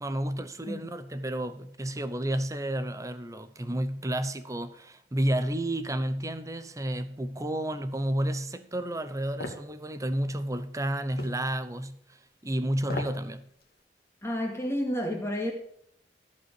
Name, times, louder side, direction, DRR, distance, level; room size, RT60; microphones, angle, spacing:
voice 1, 0.0-13.5, right 1 dB, 20° right, 0.8 m, -31 dB
sound 1, 9.4-9.7 11.2-11.4 12.8-13.2 13.6-13.7, left 2 dB, 60° left, 2.2 m, -36 dB
voice 2, 14.2-15.5, equal, 15° left, 2.4 m, -30 dB
14.5 x 5.5 x 7.7 m
head